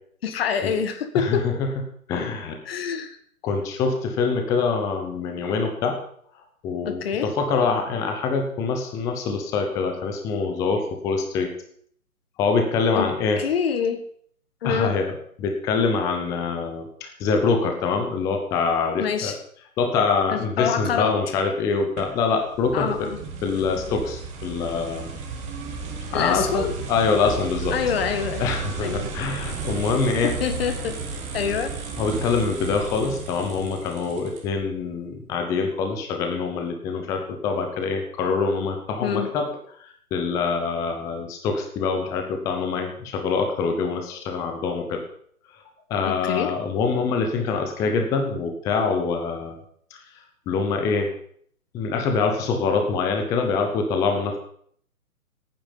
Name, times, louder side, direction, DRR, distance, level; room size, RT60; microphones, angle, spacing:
voice 1, 0.2-1.5 2.6-3.2 6.8-7.3 12.9-13.1 13.4-14.0 14.6-14.9 19.0-19.4 20.3-21.2 22.7-23.2 26.1-26.7 27.7-28.5 28.8-29.1 30.2-31.0 31.3-31.7 39.0-39.3 46.0-46.5, left 7 dB, 40° left, 9 dB, 1.6 m, -26 dB
voice 2, 1.1-1.7 2.1-2.6 3.4-6.0 6.6-11.5 12.4-13.4 14.6-15.1 15.4-19.3 19.8-23.1 23.4-25.1 26.1-27.7 28.4-30.3 32.0-39.5 39.8-45.0 45.9-49.6 49.9-50.0 50.5-51.1 51.7-54.4, left 4 dB, 5° left, 4 dB, 0.7 m, -25 dB
sound 1, 22.0-34.7, right 4 dB, 15° right, 2.1 m, -33 dB
16.5 x 9.2 x 5.4 m, 0.62 s
figure-of-eight pair, 140°, 43 cm